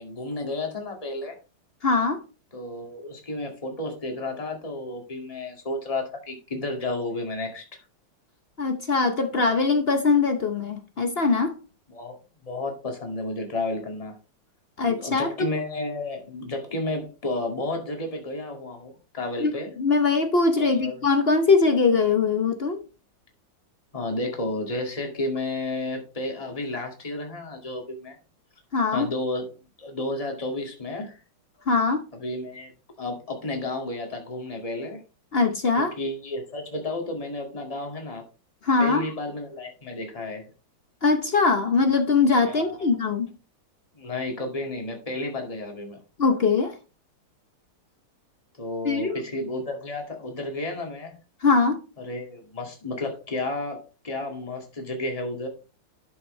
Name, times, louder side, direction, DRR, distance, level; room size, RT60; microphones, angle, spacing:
voice 1, 0.0-1.4 2.5-7.6 11.9-14.1 14.8-19.7 20.6-21.0 23.9-28.2 28.9-29.5 29.8-31.2 32.1-32.7 33.0-35.0 35.8-38.2 38.8-40.5 42.5-43.0 44.0-46.0 48.6-51.1 52.0-55.5, left 2 dB, 15° left, 2.0 m, -32 dB
voice 2, 1.8-2.2 8.6-11.6 14.8-15.5 19.4-22.8 28.7-29.1 31.7-32.1 35.3-36.0 38.6-39.1 41.0-43.3 46.2-46.7 48.8-49.2 51.4-51.8, left 4 dB, 60° left, 0.6 m, -22 dB
11.5 x 6.2 x 3.2 m
omnidirectional pair, 2.4 m